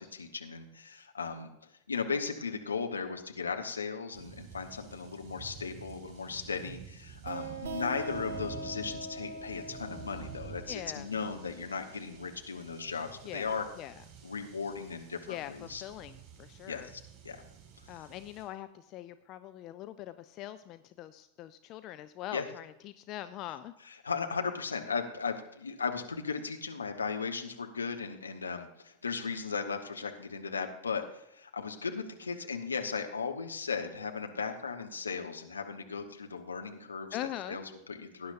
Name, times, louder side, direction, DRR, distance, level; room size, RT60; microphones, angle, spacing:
voice 1, 0.0-1.5 1.9-13.7 14.2-15.8 16.7-17.4 22.3-22.4 23.9-38.3, left 5 dB, 75° left, 4 dB, 1.2 m, -37 dB
sound 1, 4.1-18.4, right 7 dB, 35° right, 5.5 m, -50 dB
sound 2, 7.2-12.6, right 1 dB, 55° right, 1.7 m, -42 dB
voice 2, 10.7-11.1 13.2-14.0 15.3-16.9 17.9-23.7 37.1-37.6, left 13 dB, 35° left, 11 dB, 0.5 m, -42 dB
18.0 x 10.0 x 2.7 m, 0.85 s
figure-of-eight pair, 90°, 0 cm